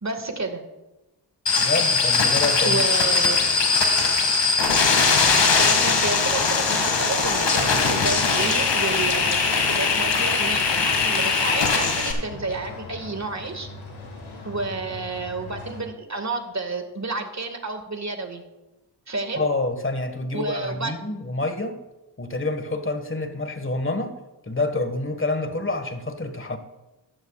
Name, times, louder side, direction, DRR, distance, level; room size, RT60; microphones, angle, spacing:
voice 1, 0.0-0.6 2.6-3.4 5.6-13.7 14.4-18.4 19.1-19.4 20.3-20.9, right 3 dB, 35° right, 6 dB, 2.0 m, -30 dB
sound 1, 1.5-12.1, left 4 dB, 65° left, 2.3 m, -20 dB
voice 2, 1.6-2.8 19.3-21.8 22.2-24.2 24.4-26.6, left 2 dB, 25° left, 8 dB, 1.7 m, -27 dB
sound 2, 8.3-15.8, left 3 dB, 80° left, 2.5 m, -41 dB
14.5 x 12.0 x 2.5 m, 1.1 s
supercardioid pair, 45°, 47 cm